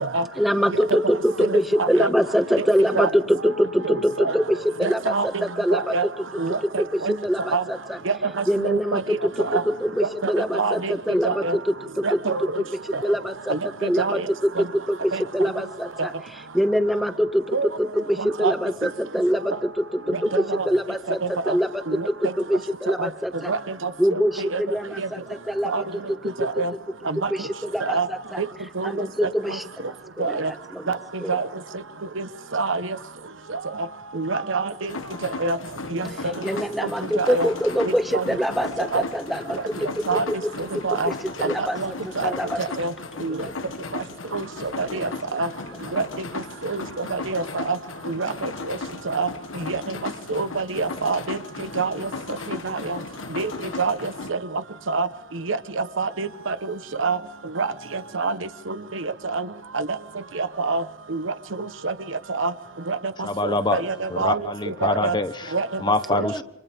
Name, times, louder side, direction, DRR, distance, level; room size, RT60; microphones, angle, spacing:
voice 1, 0.4-5.9 6.8-8.0 8.5-12.2 12.6-13.6 13.8-14.2 14.7-16.1 16.5-23.5 24.0-26.2 27.3-28.4 28.8-29.9 30.2-31.4 36.4-40.4 40.7-41.1 41.4-42.6 44.9-45.0 66.2-66.4, equal, ahead, 1.6 m, -24 dB
voice 2, 1.4-2.1 2.6-2.7 2.9-3.1 3.8-4.3 4.8-5.4 5.7-6.1 6.4-6.6 7.0-7.1 7.5-7.6 8.1-9.0 9.4-9.6 10.2-10.9 11.2-11.6 12.0-12.6 12.9-13.0 13.5-13.6 14.0-14.2 15.1-15.2 16.0-16.1 17.5-17.7 18.2-18.5 20.3-20.7 21.5-21.6 21.9-22.1 23.0-23.1 23.5-24.6 25.0-25.1 25.6-25.8 26.4-26.7 27.1-27.3 27.9-28.1 28.4-28.5 28.8-29.0 30.2-30.5 31.3-31.5 32.2-32.3 32.5-32.8 34.1-34.9 35.4-35.6 35.9-36.1 37.2-37.5 38.1-38.2 38.9-39.0 40.1-40.2 40.8-41.1 41.4-41.9 42.2-42.3 42.6-42.9 43.2-43.4 44.3-44.4 44.8-45.5 45.9-46.0 46.6-46.8 47.1-47.8 48.1-48.8 49.1-49.3 49.7-49.8 50.3-51.4 51.8-52.1 52.6-53.0 53.4-53.5 53.8-54.4 54.9-55.1 55.5-56.5 57.0-57.2 57.6-57.7 58.1-58.4 58.7-59.5 59.7-59.9 60.4-60.8 61.1-61.2 61.8-61.9 62.4-62.5 62.9-63.0 63.5-64.4 64.8-65.1 65.5-65.7 66.1-66.2, right 4 dB, 80° right, 1.1 m, -25 dB
sound 1, 34.9-54.3, left 3 dB, 85° left, 1.3 m, -36 dB
voice 3, 63.2-63.8 64.1-65.5 65.8-66.4, left 2 dB, 25° left, 1.1 m, -25 dB
29.5 x 26.5 x 3.6 m
head